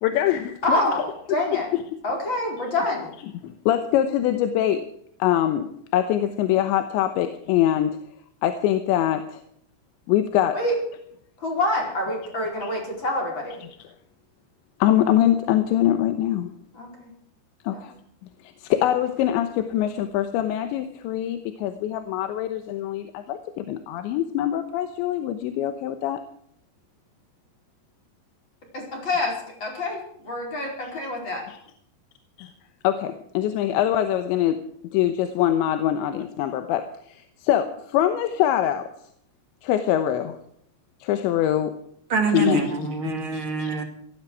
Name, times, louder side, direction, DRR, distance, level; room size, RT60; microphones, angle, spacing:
voice 1, 0.0-1.0 1.7-1.8 3.4-4.9 5.2-8.0 8.4-9.4 10.1-10.6 12.6-12.7 14.8-16.5 17.6-17.9 18.4-26.2 31.5-31.6 32.4-32.5 32.8-34.6 34.9-38.9 39.6-40.4 41.0-41.7 42.3-42.6 43.3-43.7, left 11 dB, 85° left, 9 dB, 3.3 m, -23 dB
voice 2, 0.6-1.7 2.0-3.1 10.5-10.7 11.4-13.6 16.7-17.1 17.7-17.8 28.7-31.4, left 1 dB, 25° left, 0 dB, 5.1 m, -27 dB
voice 3, 42.1-43.8, right 4 dB, 40° right, 3 dB, 2.3 m, -25 dB
17.5 x 14.5 x 4.8 m, 0.68 s
omnidirectional pair, 5.1 m